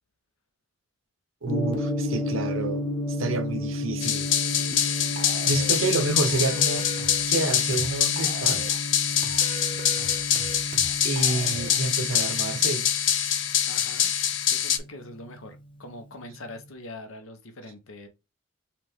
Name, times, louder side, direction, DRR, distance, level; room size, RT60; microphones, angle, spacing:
voice 1, 1.4-4.3 4.7-4.9 5.5-6.9 7.3-8.6 11.0-12.9, right 3 dB, 85° right, 0.8 m, -29 dB
Gong, 1.5-15.6, left 1 dB, 25° left, 0.8 m, -33 dB
sound 1, 4.0-14.8, left 9 dB, 65° left, 0.6 m, -25 dB
sound 2, 5.2-5.8 6.2-7.3 7.7-8.8 9.2-11.8, right 3 dB, 40° right, 0.4 m, -39 dB
voice 2, 5.9-6.6 13.7-18.1, left 2 dB, 85° left, 1.0 m, -43 dB
5.9 x 2.5 x 3.5 m
head